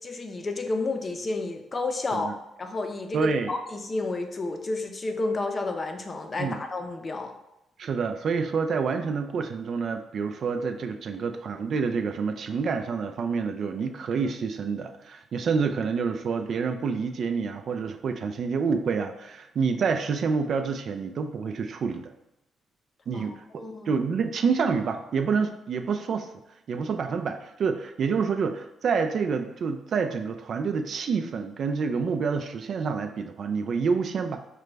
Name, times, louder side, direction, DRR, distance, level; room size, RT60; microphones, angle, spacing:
voice 1, 0.0-2.3 2.6-7.3 23.1-24.0, left 2 dB, 35° left, 5 dB, 0.5 m, -31 dB
voice 2, 3.1-3.5 6.4-6.6 7.8-22.0 23.1-26.3 26.7-34.4, right 5 dB, 60° right, 6 dB, 0.3 m, -28 dB
4.9 x 2.2 x 3.2 m, 0.87 s
cardioid pair, 90°, 0 cm